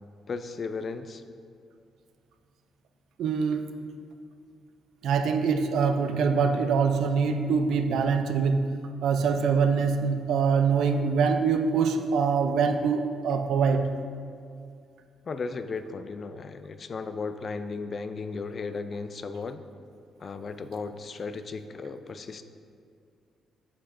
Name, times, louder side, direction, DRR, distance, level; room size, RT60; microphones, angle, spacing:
voice 1, 0.3-1.2 15.3-19.6 20.2-22.4, left 4 dB, 45° left, 10 dB, 0.3 m, -35 dB
voice 2, 3.2-3.9 5.0-8.7 9.0-13.9, right 5 dB, 75° right, 7 dB, 0.4 m, -24 dB
7.9 x 5.6 x 2.5 m, 2.3 s
cardioid pair, 90°, 0 cm